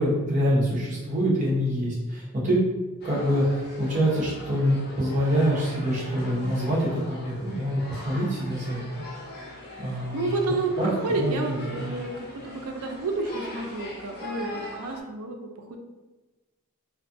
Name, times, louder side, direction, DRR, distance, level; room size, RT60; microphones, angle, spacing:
voice 1, 0.0-2.6 3.0-8.9 9.8-10.3 10.8-10.9 11.2-11.8, equal, 35° right, -6 dB, 0.8 m, -25 dB
sound 1, 3.0-15.0, left 1 dB, 45° left, 0.5 m, -41 dB
voice 2, 9.7-15.8, right 2 dB, 85° right, 3 dB, 0.4 m, -30 dB
2.6 x 2.3 x 2.5 m, 1.2 s
head